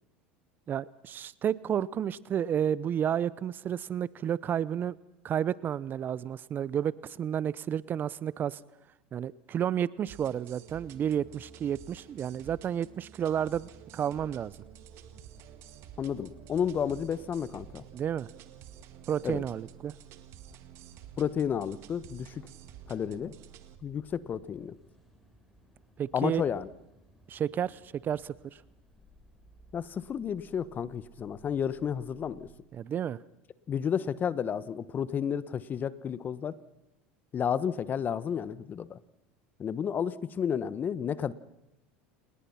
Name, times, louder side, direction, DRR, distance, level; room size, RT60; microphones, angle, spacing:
voice 1, 0.7-4.9 5.2-8.6 9.1-14.5 17.9-18.3 19.1-19.9 26.0-26.4 27.3-28.6 32.7-33.2, right 9 dB, 35° right, 20 dB, 0.8 m, -31 dB
sound 1, 10.1-23.8, right 8 dB, 55° right, 2.1 m, -51 dB
sound 2, 14.1-32.6, right 7 dB, ahead, 7.6 m, -58 dB
voice 2, 16.0-17.8 19.2-19.4 21.2-22.4 22.9-23.4 23.8-24.7 26.1-26.7 29.7-32.5 33.7-36.6 37.3-39.0 39.6-41.3, left 8 dB, 35° left, 16 dB, 1.2 m, -31 dB
29.0 x 20.0 x 5.9 m, 0.93 s
hypercardioid pair, 95°, 5 cm